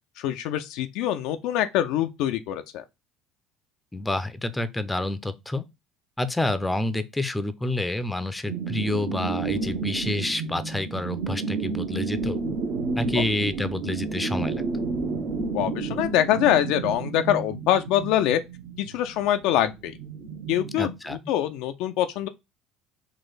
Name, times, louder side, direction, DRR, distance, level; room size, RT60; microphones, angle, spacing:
voice 1, 0.2-2.8 15.5-18.4 18.8-19.9 20.5-22.3, left 11 dB, 60° left, 0.4 m, -24 dB
voice 2, 3.9-5.6 6.2-12.4 12.9-14.6 20.8-21.2, left 2 dB, 10° left, 0.5 m, -28 dB
sound 1, 8.5-20.9, right 4 dB, 55° right, 0.9 m, -31 dB
4.1 x 2.5 x 3.8 m
figure-of-eight pair, 60°, 0 cm